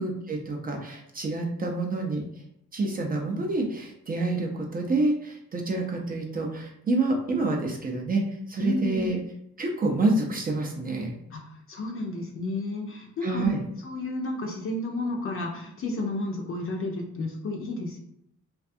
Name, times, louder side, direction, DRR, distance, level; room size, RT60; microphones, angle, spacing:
voice 1, 0.0-2.4 2.7-9.2 9.6-11.1 13.2-13.6, right 2 dB, 30° right, 2 dB, 0.4 m, -28 dB
voice 2, 8.6-9.1 11.3-13.5 13.8-18.0, left 2 dB, 45° left, 0 dB, 0.5 m, -32 dB
2.4 x 2.3 x 2.6 m, 0.76 s
cardioid pair, 90°, 30 cm